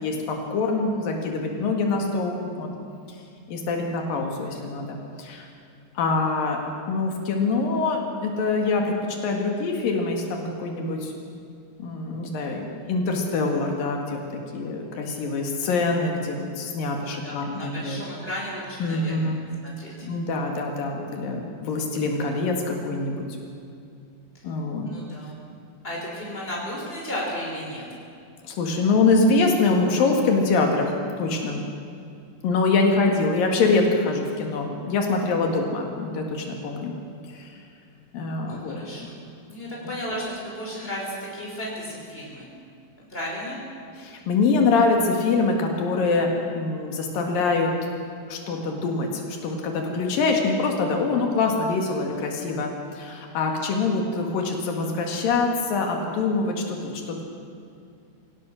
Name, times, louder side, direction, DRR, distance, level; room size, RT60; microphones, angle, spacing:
voice 1, 0.0-2.7 3.5-4.9 5.2-5.5 6.0-6.6 6.9-8.9 9.2-11.1 11.8-18.0 18.8-19.4 20.0-23.3 24.4-24.9 28.4-31.6 32.4-36.9 37.3-37.6 38.1-38.8 44.0-47.7 48.3-57.2, left 3 dB, 90° left, 2 dB, 3.8 m, -24 dB
voice 2, 17.0-19.3 19.6-20.1 24.9-25.4 25.8-27.8 38.4-39.2 39.5-42.5 43.1-43.6 52.0-52.2, equal, 15° left, -3 dB, 5.8 m, -34 dB
25.0 x 17.0 x 6.4 m, 2.5 s
omnidirectional pair, 3.9 m